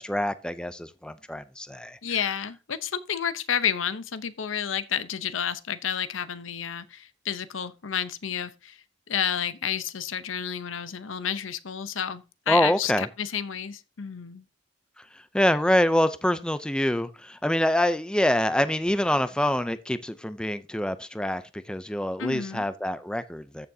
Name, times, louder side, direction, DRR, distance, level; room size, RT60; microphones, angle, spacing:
voice 1, 0.0-2.0 12.5-13.1 15.3-23.7, left 1 dB, 5° left, 0.4 m, -25 dB
voice 2, 2.0-14.4 22.2-22.7, left 8 dB, 90° left, 0.8 m, -30 dB
14.0 x 6.3 x 2.7 m
head